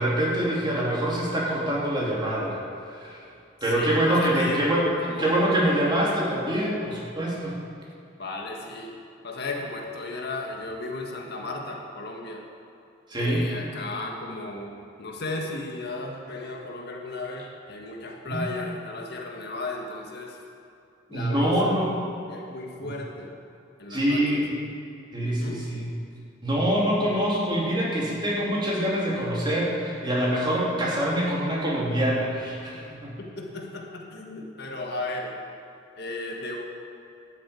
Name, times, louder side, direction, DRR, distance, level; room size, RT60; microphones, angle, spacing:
voice 1, 0.0-2.6 2.9-3.2 3.6-7.6 13.1-13.4 18.3-18.5 21.1-21.9 22.8-22.9 23.9-24.5 25.1-25.9 26.4-33.2, right 1 dB, 25° right, -5 dB, 3.0 m, -25 dB
voice 2, 3.7-4.6 5.0-5.5 8.2-8.9 9.2-12.5 13.1-20.4 21.1-21.8 22.3-23.3 23.8-24.4 25.2-25.6 33.2-35.4 36.0-36.6, left 2 dB, 60° left, 0 dB, 1.6 m, -35 dB
12.0 x 7.6 x 8.4 m, 2.7 s
head